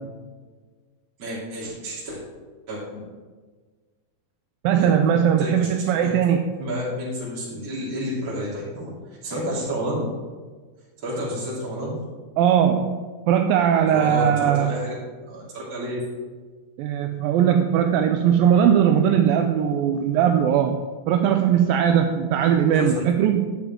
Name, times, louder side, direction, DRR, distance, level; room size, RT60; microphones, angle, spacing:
voice 1, 1.2-2.2 2.7-3.0 4.8-4.9 5.4-5.7 6.0-6.1 6.6-8.9 9.2-10.0 11.0-11.9 13.9-14.9 15.3-16.0 22.7-22.9, equal, 35° right, -9 dB, 3.7 m, -30 dB
voice 2, 4.6-6.4 12.4-14.8 16.8-23.6, right 9 dB, 85° right, 6 dB, 2.1 m, -20 dB
12.0 x 8.5 x 3.7 m, 1.4 s
omnidirectional pair, 4.5 m